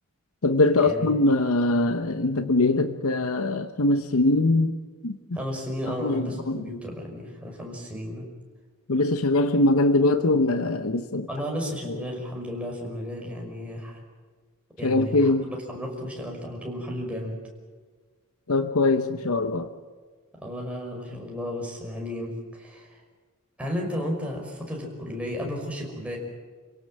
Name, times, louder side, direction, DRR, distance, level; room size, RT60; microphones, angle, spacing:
voice 1, 0.4-4.7 5.0-5.2 6.0-6.6 8.9-11.3 14.8-15.5 18.5-19.7, left 2 dB, 65° left, 0.9 m, -22 dB
voice 2, 5.3-8.3 11.3-14.0 14.8-17.4 20.3-23.0 23.6-26.2, equal, 5° right, 5.4 m, -33 dB
27.5 x 17.5 x 7.6 m
head